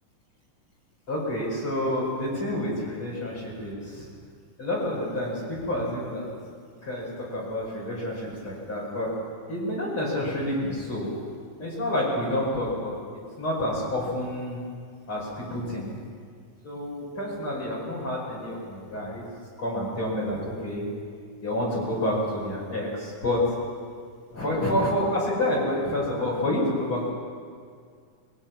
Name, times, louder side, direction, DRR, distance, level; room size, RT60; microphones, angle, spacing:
voice 1, 1.1-4.1 4.6-6.3 6.8-9.1 9.5-11.2 11.6-13.0 13.4-14.7 15.1-15.9 16.6-19.2 19.6-20.9 21.4-23.4 24.3-27.1, left 1 dB, 35° left, -5 dB, 6.3 m, -28 dB
23.0 x 21.0 x 6.0 m, 2.1 s
omnidirectional pair, 4.2 m